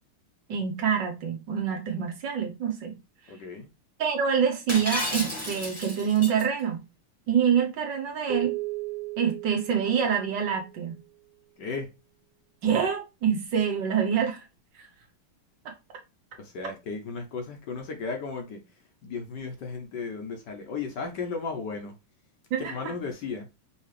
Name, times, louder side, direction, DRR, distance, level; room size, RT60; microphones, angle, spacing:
voice 1, 0.5-2.9 4.0-6.8 7.3-8.6 9.2-11.0 12.6-14.4 14.8-14.9 15.6-15.7 22.5-22.8, right 7 dB, 65° right, 1.4 m, -26 dB
voice 2, 3.3-3.7 11.6-11.9 16.4-18.6 19.0-21.9 22.6-23.5, left 4 dB, 65° left, 1.2 m, -35 dB
Shatter, 4.7-6.4, left 1 dB, 10° left, 1.2 m, -32 dB
sound 1, 8.3-10.9, right 18 dB, 90° right, 1.7 m, -35 dB
5.6 x 3.0 x 3.2 m
omnidirectional pair, 2.3 m